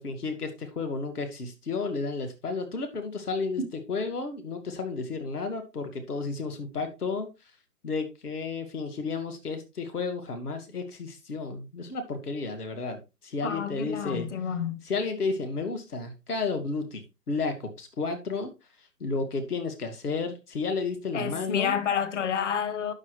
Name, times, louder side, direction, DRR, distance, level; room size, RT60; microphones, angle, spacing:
voice 1, 0.0-3.6 3.9-7.3 7.8-14.3 14.9-17.0 17.3-18.5 19.0-21.8, left 4 dB, 65° left, 2.2 m, -32 dB
voice 2, 13.4-14.8 21.1-22.9, left 7 dB, 45° left, 1.3 m, -29 dB
10.5 x 6.6 x 3.2 m
figure-of-eight pair, 145°, 49 cm